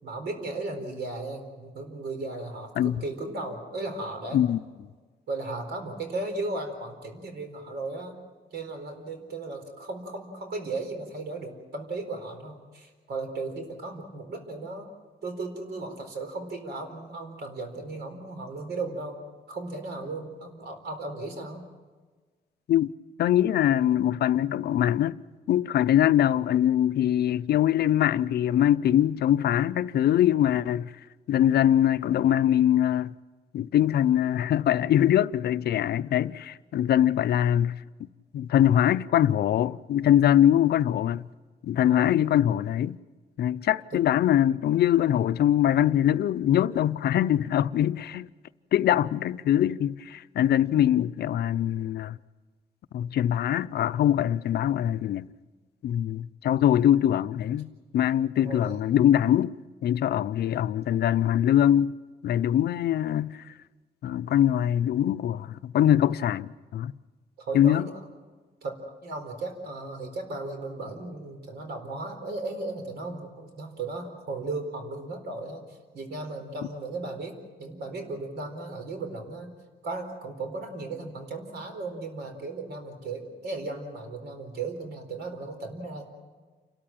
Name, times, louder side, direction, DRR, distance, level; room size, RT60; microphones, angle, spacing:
voice 1, 0.0-4.4 5.3-8.2 8.5-14.9 15.2-19.2 19.5-21.7 41.9-42.3 43.9-44.0 58.4-58.8 67.4-67.9 68.6-68.7 69.0-79.5 79.8-86.1, right 3 dB, 90° right, 4.4 m, -36 dB
voice 2, 23.2-25.2 25.5-30.9 31.3-33.1 33.5-37.8 38.3-41.2 41.6-43.0 43.4-48.3 48.7-52.2 52.9-55.3 55.8-59.5 59.8-61.9 62.2-63.4 64.0-66.9 67.5-67.9, left 11 dB, 75° left, 0.6 m, -23 dB
29.0 x 13.5 x 9.1 m
wide cardioid pair, 165°, 17 cm